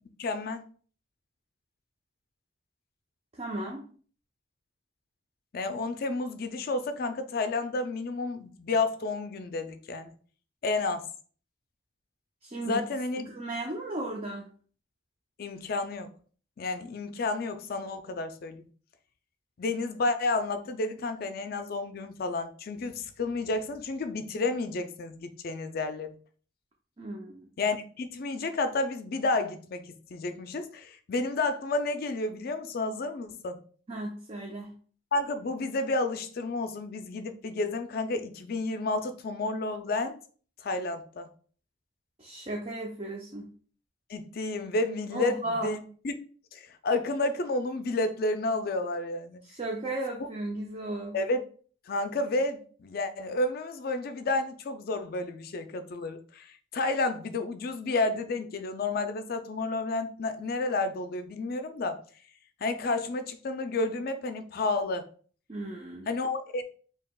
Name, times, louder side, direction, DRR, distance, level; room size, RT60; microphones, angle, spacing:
voice 1, 0.2-0.6 5.5-10.1 10.6-11.1 12.6-13.3 15.4-16.1 16.6-18.6 19.6-26.1 27.6-33.6 35.1-40.2 40.6-41.3 44.1-46.1 46.5-49.4 51.1-51.4 51.9-62.0 62.6-65.1 66.1-66.6, left 2 dB, 50° left, 0.4 m, -31 dB
voice 2, 3.3-3.9 12.4-12.8 13.3-14.5 27.0-27.5 33.9-34.7 42.2-43.5 45.1-45.7 49.4-51.2 65.5-66.1, right 2 dB, 30° right, 0.6 m, -35 dB
4.6 x 2.8 x 2.3 m
head